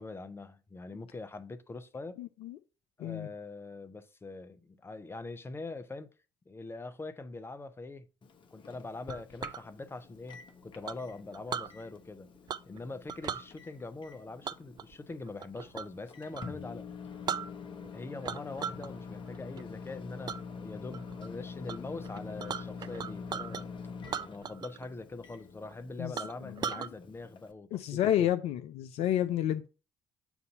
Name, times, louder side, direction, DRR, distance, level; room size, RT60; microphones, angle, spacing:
voice 1, 0.0-2.2 3.0-6.1 6.5-8.1 8.5-12.3 12.7-16.8 17.9-23.7 24.3-28.3, left 3 dB, 20° left, 0.8 m, -43 dB
voice 2, 2.2-2.6 3.0-3.3 26.0-26.1 26.5-26.9 27.7-29.7, left 11 dB, 60° left, 0.5 m, -30 dB
Microwave oven, 8.2-27.5, left 5 dB, 45° left, 1.0 m, -46 dB
Chink clink, 9.1-9.6 10.9-11.7 12.5-12.8 13.1-13.5 14.4-16.0 16.3-16.5 16.9-17.0 17.3-17.9 18.2-18.9 19.3-19.6 20.3-20.4 20.9-21.3 21.7-21.8 22.0-23.6 24.0-24.9 25.1-25.2 25.7-25.8 26.2-26.9, right 7 dB, 35° right, 0.3 m, -38 dB
7.0 x 2.6 x 5.3 m
figure-of-eight pair, 50°, 12 cm